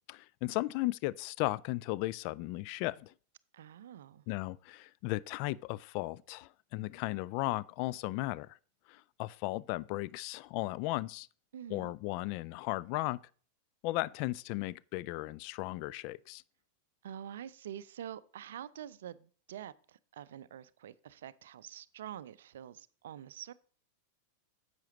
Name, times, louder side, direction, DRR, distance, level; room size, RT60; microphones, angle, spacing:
voice 1, 0.1-3.1 4.3-8.6 8.9-11.3 11.7-13.2 13.8-16.4, left 19 dB, 45° left, 0.3 m, -36 dB
voice 2, 3.5-4.3 11.5-11.9 17.0-23.5, right 10 dB, 60° right, 0.4 m, -46 dB
10.5 x 7.8 x 3.0 m
figure-of-eight pair, 90°, 0 cm